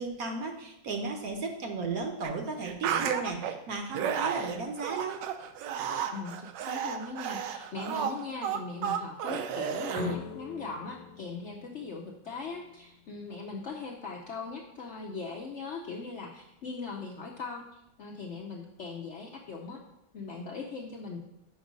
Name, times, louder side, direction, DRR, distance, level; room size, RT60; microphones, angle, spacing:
voice 1, 0.0-5.2, right 4 dB, 65° right, 4 dB, 1.1 m, -34 dB
sound 1, 2.2-2.3 2.6-3.5 3.9-10.2, right 8 dB, 85° right, 1.2 m, -33 dB
voice 2, 6.1-19.8 20.1-21.2, left 4 dB, 65° left, 0 dB, 0.7 m, -40 dB
sound 2, 9.9-12.8, left 10 dB, 90° left, 1.2 m, -43 dB
5.3 x 5.1 x 5.1 m, 0.87 s
omnidirectional pair, 1.9 m